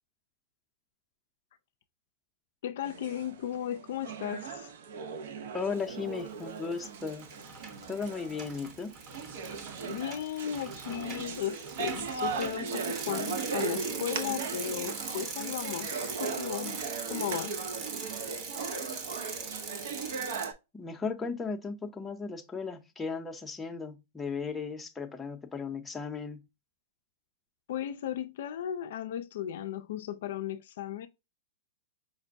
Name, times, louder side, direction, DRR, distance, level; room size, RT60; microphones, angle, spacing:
voice 1, 2.6-4.7 9.9-16.8 17.1-17.6 27.7-31.1, left 10 dB, 65° left, 0.3 m, -35 dB
sound 1, 2.8-20.5, right 5 dB, 65° right, 0.6 m, -38 dB
voice 2, 5.5-7.3 7.9-8.9 20.7-26.4, left 5 dB, 15° left, 0.6 m, -36 dB
Bicycle, 6.0-6.4 6.7-20.5, right 4 dB, 35° right, 0.9 m, -41 dB
5.1 x 2.1 x 2.5 m
hypercardioid pair, 120°, 0 cm